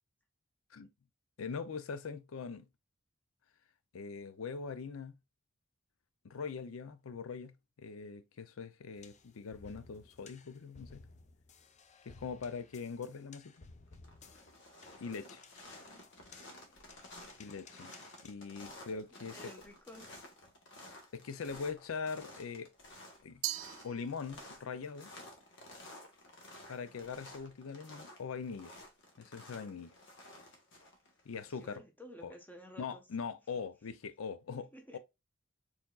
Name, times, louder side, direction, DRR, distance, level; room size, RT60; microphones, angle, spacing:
voice 1, 1.4-2.7 3.9-5.1 6.2-11.0 12.1-13.6 15.0-15.4 17.4-17.9 18.2-19.4 21.1-22.7 23.2-23.4 23.8-25.1 26.7-28.7 29.2-29.9 31.3-31.8 32.2-32.3 32.8-34.7 34.9-35.0, left 5 dB, 85° left, 0.5 m, -42 dB
sound 1, 8.9-18.3, left 4 dB, 35° left, 0.5 m, -58 dB
sound 2, 13.2-13.6 13.9-31.8, left 1 dB, 60° left, 1.4 m, -53 dB
voice 2, 15.6-16.0 18.1-18.2 19.1-20.1 31.4-33.0 34.6-35.0, equal, 10° left, 1.1 m, -54 dB
Glass, 23.4-24.7, right 15 dB, 75° right, 0.4 m, -41 dB
4.5 x 4.2 x 2.3 m
head